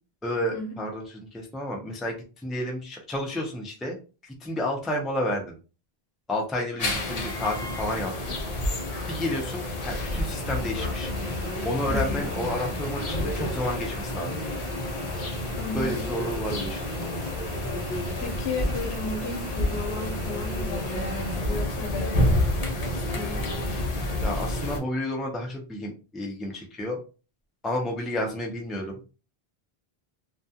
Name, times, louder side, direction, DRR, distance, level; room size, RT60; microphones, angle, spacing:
voice 1, 0.2-4.0 4.2-5.6 6.3-8.4 9.1-11.1 11.6-14.4 15.7-16.8 24.2-27.0 27.6-29.0, left 1 dB, ahead, 0 dB, 0.3 m, -31 dB
sound 1, 6.8-24.8, left 1 dB, 45° left, 0.6 m, -29 dB
sound 2, 10.0-21.4, right 2 dB, 75° right, 1.0 m, -47 dB
voice 2, 11.9-12.3 15.6-16.1 18.2-22.4 22.8-23.5, left 3 dB, 80° left, 3 dB, 1.0 m, -34 dB
2.3 x 2.3 x 2.7 m, 0.34 s
omnidirectional pair, 1.0 m